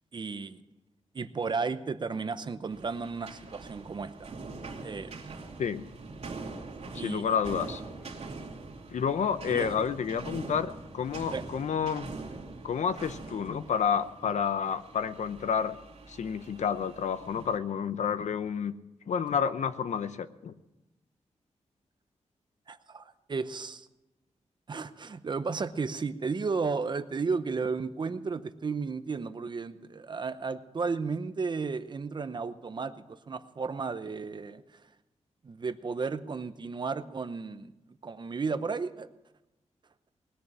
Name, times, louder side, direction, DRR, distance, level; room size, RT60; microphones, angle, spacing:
voice 1, 0.1-0.6 1.1-4.1 4.8-5.4 7.0-7.3 9.5-9.7 11.3-11.4 22.7-23.9 24.7-34.6 35.4-37.7 38.0-39.1, right 4 dB, 40° right, 11 dB, 0.7 m, -33 dB
sound 1, 2.7-17.6, right 3 dB, 65° right, 2.6 m, -43 dB
voice 2, 6.9-7.8 8.9-12.1 12.6-15.8 16.1-18.7 19.1-20.5, left 7 dB, 80° left, 13 dB, 0.7 m, -30 dB
20.0 x 6.9 x 8.8 m, 0.99 s
wide cardioid pair, 150°, 12 cm